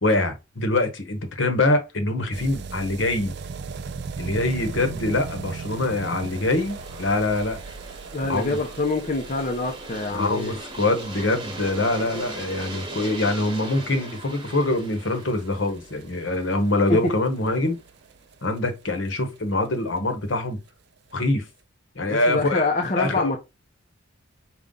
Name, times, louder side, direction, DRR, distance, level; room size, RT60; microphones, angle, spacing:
voice 1, 0.0-3.3 4.2-7.6 8.3-8.6 10.1-17.8 18.4-20.6 21.1-21.5 21.9-22.7 23.0-23.3, left 2 dB, 60° left, 1.0 m, -24 dB
sound 1, 2.3-19.1 19.4-19.5 19.7-19.8 20.0-20.1 20.3-20.4 21.1-21.2, right 5 dB, 50° right, 0.3 m, -39 dB
Aircraft, 4.9-17.6, right 2 dB, 20° right, 1.1 m, -40 dB
voice 2, 8.1-10.5 16.9-17.0 22.1-23.4, left 2 dB, 35° left, 0.6 m, -25 dB
5.3 x 2.3 x 3.7 m
head